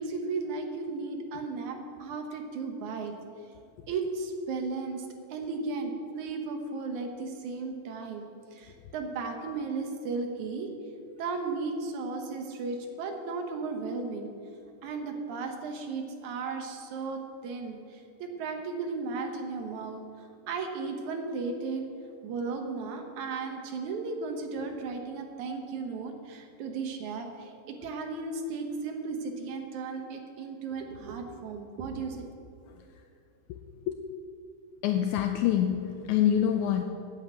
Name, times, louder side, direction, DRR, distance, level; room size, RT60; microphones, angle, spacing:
voice 1, 0.0-3.1 3.9-10.7 11.2-14.3 14.8-21.9 22.2-32.3, right 4 dB, 65° right, 4 dB, 2.2 m, -35 dB
voice 2, 34.8-36.8, left 10 dB, 85° left, 6 dB, 1.7 m, -25 dB
9.6 x 8.6 x 8.8 m, 2.6 s
omnidirectional pair, 4.0 m